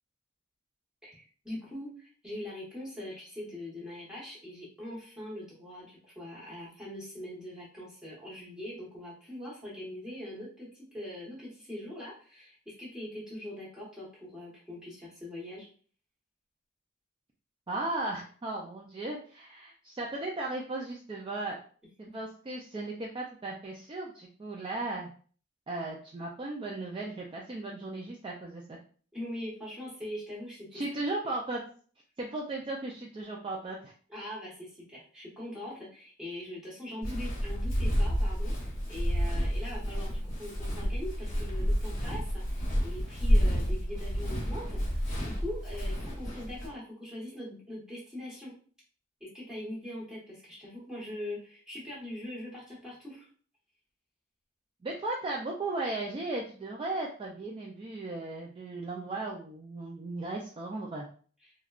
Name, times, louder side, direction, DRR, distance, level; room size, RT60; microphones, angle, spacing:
voice 1, 1.0-15.7 29.1-30.8 34.1-48.5 49.2-53.3 61.4-61.5, left 1 dB, 5° right, -7 dB, 1.3 m, -42 dB
voice 2, 17.7-21.6 22.0-25.1 25.7-28.8 30.7-31.6 32.2-33.9 54.8-61.1, right 2 dB, 25° right, -2 dB, 0.4 m, -36 dB
Walk footsteps, 37.0-46.7, equal, 45° left, 1.0 m, -30 dB
3.5 x 2.2 x 2.3 m, 0.43 s
head